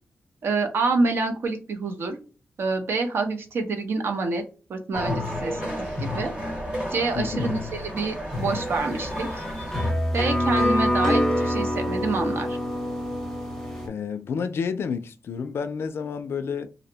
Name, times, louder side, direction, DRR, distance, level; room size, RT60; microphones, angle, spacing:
voice 1, 0.4-2.2 2.6-4.4 4.7-6.3 6.9-9.4 10.1-12.6, right 3 dB, 60° right, 0.6 m, -27 dB
sound 1, 4.9-9.9, left 1 dB, 25° right, 1.0 m, -31 dB
voice 2, 7.2-7.5 13.9-16.7, left 6 dB, 65° left, 0.3 m, -30 dB
sound 2, 8.3-13.9, equal, 5° left, 0.6 m, -26 dB
2.5 x 2.0 x 2.7 m
wide cardioid pair, 155°, 5 cm